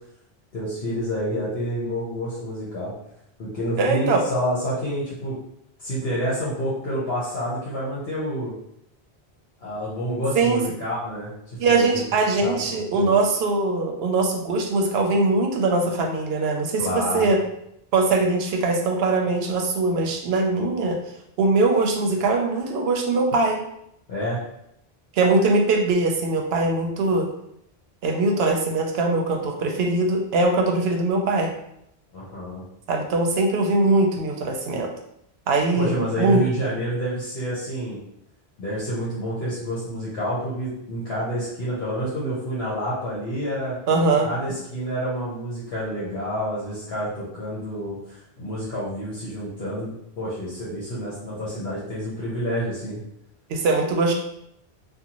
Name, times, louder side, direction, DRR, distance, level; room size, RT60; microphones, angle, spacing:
voice 1, 0.5-2.9 3.4-5.3 5.8-8.5 9.6-11.3 11.7-12.0 12.4-13.1 16.8-17.3 24.1-24.4 32.1-32.6 35.7-38.0 38.6-43.8 44.2-53.0, equal, 70° left, -8 dB, 1.0 m, -28 dB
voice 2, 3.8-4.2 10.4-10.6 11.6-17.4 17.9-21.0 21.4-23.6 25.1-27.3 28.0-31.5 32.9-34.9 35.5-36.4 43.9-44.3 53.5-54.1, right 3 dB, 75° right, 2 dB, 0.8 m, -21 dB
2.5 x 2.3 x 2.9 m, 0.77 s
omnidirectional pair, 1.1 m